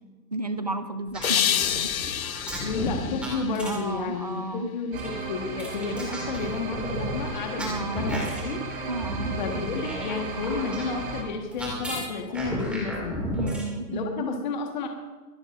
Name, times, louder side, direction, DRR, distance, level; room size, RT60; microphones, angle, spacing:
voice 1, 0.3-1.9 3.6-4.7 7.6-8.0 8.9-9.3 13.3-14.2, right 2 dB, 25° right, 9 dB, 0.5 m, -32 dB
sound 1, 1.1-4.0 5.0-13.7, equal, ahead, 2.2 m, -34 dB
sound 2, 1.2-4.4, left 9 dB, 55° left, 0.8 m, -29 dB
voice 2, 2.6-8.6 9.4-13.3 13.9-14.9, left 4 dB, 30° left, 3 dB, 1.4 m, -31 dB
sound 3, 4.9-11.2, right 4 dB, 55° right, 5.0 m, -35 dB
25.5 x 13.0 x 2.5 m, 1.3 s
hypercardioid pair, 170°, 49 cm